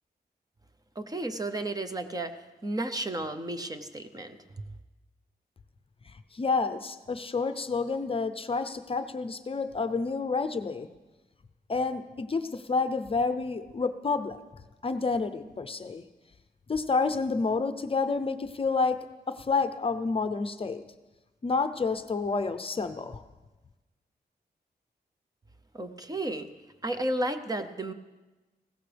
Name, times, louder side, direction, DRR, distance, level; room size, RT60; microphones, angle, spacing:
voice 1, 1.0-2.4 2.6-4.6 25.7-26.5 26.8-27.9, right 1 dB, 20° right, 9 dB, 0.7 m, -33 dB
voice 2, 6.3-10.9 11.7-14.4 14.8-16.0 16.7-20.8 21.4-23.2, left 4 dB, 35° left, 9 dB, 0.6 m, -29 dB
20.0 x 16.5 x 3.4 m, 1.1 s
wide cardioid pair, 160°, 17 cm